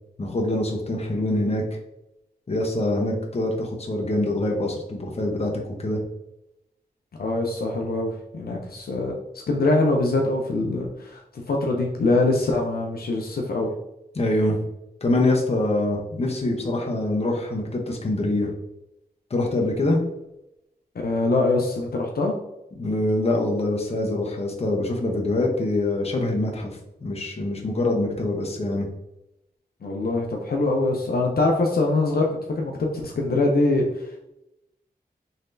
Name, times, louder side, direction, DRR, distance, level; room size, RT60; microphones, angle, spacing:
voice 1, 0.2-1.6 2.5-5.5 5.8-6.0 14.1-14.6 15.0-18.5 19.3-20.0 22.7-26.7 27.0-28.9, left 1 dB, 40° left, 0 dB, 0.8 m, -24 dB
voice 2, 7.2-9.1 9.5-13.7 20.9-22.3 29.8-34.1, left 2 dB, 70° left, 0 dB, 0.6 m, -23 dB
4.0 x 3.2 x 2.6 m, 0.88 s
wide cardioid pair, 95°, 16 cm